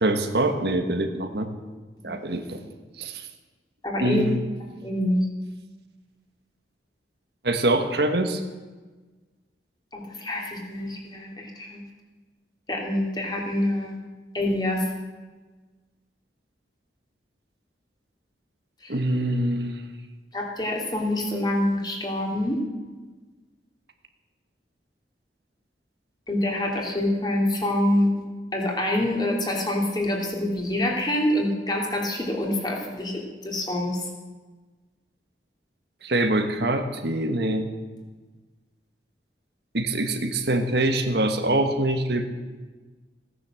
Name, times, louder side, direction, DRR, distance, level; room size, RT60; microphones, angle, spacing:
voice 1, 0.0-1.5 2.0-2.6 3.0-3.2 4.0-4.4 7.4-8.4 18.9-19.8 36.0-37.6 39.7-42.3, right 1 dB, 65° right, 6 dB, 1.4 m, -24 dB
voice 2, 3.8-4.2 4.8-5.2 9.9-11.8 12.7-13.9 14.3-14.8 18.8-18.9 20.3-22.6 26.3-28.1 28.5-33.9, left 1 dB, 25° left, -1 dB, 2.8 m, -26 dB
16.5 x 10.0 x 7.6 m, 1.3 s
head